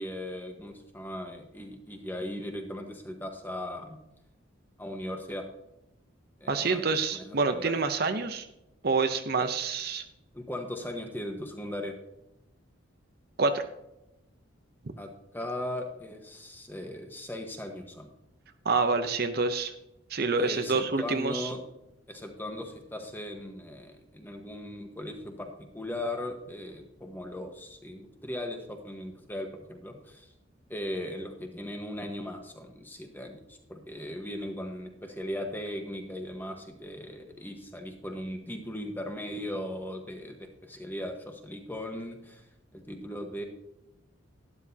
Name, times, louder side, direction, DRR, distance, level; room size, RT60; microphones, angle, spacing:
voice 1, 0.0-4.0 4.8-5.5 6.4-6.8 7.1-7.8 10.3-11.9 15.0-18.1 20.3-21.6 22.1-30.3 30.7-42.4 42.7-43.4, left 1 dB, 10° left, 4 dB, 1.2 m, -38 dB
voice 2, 6.5-8.5 8.8-10.0 13.4-13.7 18.6-19.7 20.1-21.5, right 4 dB, 50° right, 8 dB, 0.7 m, -27 dB
12.0 x 11.5 x 2.8 m, 0.88 s
head